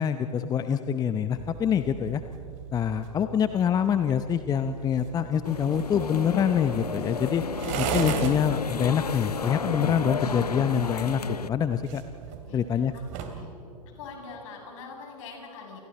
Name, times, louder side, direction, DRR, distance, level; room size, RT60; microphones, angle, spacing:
voice 1, 0.0-2.2 2.7-7.4 7.8-12.0 12.5-12.9, left 8 dB, 20° left, 10 dB, 0.8 m, -25 dB
sound 1, 1.4-13.4, right 7 dB, 40° right, 2.8 m, -38 dB
sound 2, 5.4-11.5, left 6 dB, 80° left, 0.7 m, -33 dB
voice 2, 12.5-13.6 13.9-15.8, left 4 dB, 55° left, 0 dB, 7.4 m, -44 dB
29.5 x 28.5 x 4.3 m, 2.9 s
figure-of-eight pair, 100°, 20 cm